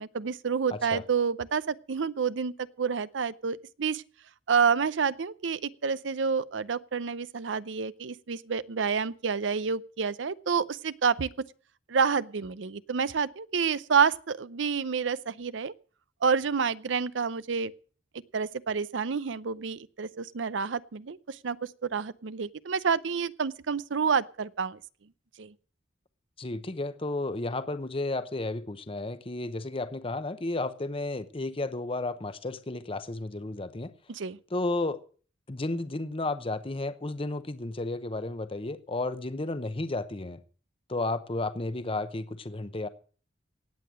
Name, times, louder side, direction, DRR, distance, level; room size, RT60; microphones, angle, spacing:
voice 1, 0.0-4.0 4.5-11.3 11.9-15.7 16.2-17.7 18.3-21.6 21.8-24.8 25.4-25.5 34.1-34.4, right 6 dB, 85° right, 0.6 m, -28 dB
voice 2, 0.7-1.0 26.4-33.9 34.5-35.0 35.5-40.4 40.9-42.9, left 2 dB, 30° left, 0.8 m, -32 dB
17.5 x 8.6 x 6.2 m
head